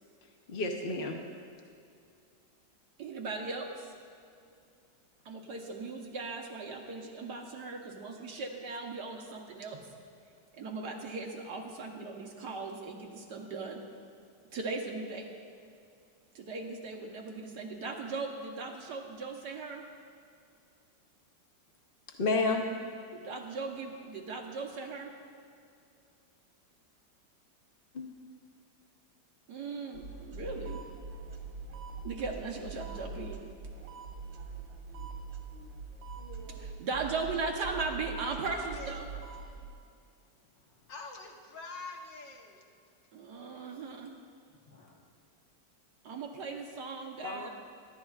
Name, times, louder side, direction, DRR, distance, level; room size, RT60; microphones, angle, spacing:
voice 1, 0.5-1.2 22.2-22.6 27.9-28.1 47.2-47.5, left 3 dB, 45° left, 2 dB, 0.7 m, -30 dB
voice 2, 3.0-3.9 5.2-9.8 10.6-13.8 14.5-15.4 16.3-19.8 23.1-25.1 29.5-30.8 32.0-33.5 36.6-39.1 43.1-44.1 46.0-47.5, right 4 dB, 65° right, 1 dB, 1.6 m, -38 dB
sound 1, 29.9-39.7, right 3 dB, 90° right, 2.0 m, -43 dB
voice 3, 38.3-39.0 40.6-42.7 44.6-45.1, left 3 dB, 80° left, 2 dB, 1.8 m, -46 dB
23.0 x 11.5 x 2.4 m, 2.4 s
omnidirectional pair, 2.0 m